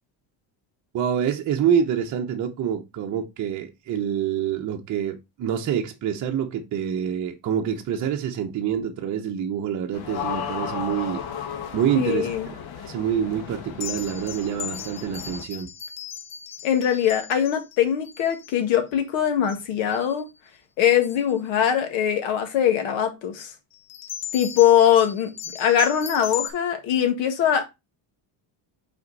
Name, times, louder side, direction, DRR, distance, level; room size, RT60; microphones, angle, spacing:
voice 1, 0.9-11.2 11.7-12.4 12.8-15.7, right 8 dB, 40° right, 0.8 m, -26 dB
sound 1, 9.9-15.4, left 7 dB, 50° left, 1.3 m, -34 dB
voice 2, 12.0-12.5 16.6-20.3 20.8-23.5 24.3-25.3 25.6-27.6, left 9 dB, 75° left, 1.8 m, -21 dB
sound 2, 13.8-18.6 19.4-19.6 19.9-20.3 21.0-21.2 23.7-26.5, left 8 dB, 35° left, 1.0 m, -37 dB
5.7 x 4.3 x 4.0 m
cardioid pair, 160°, 47 cm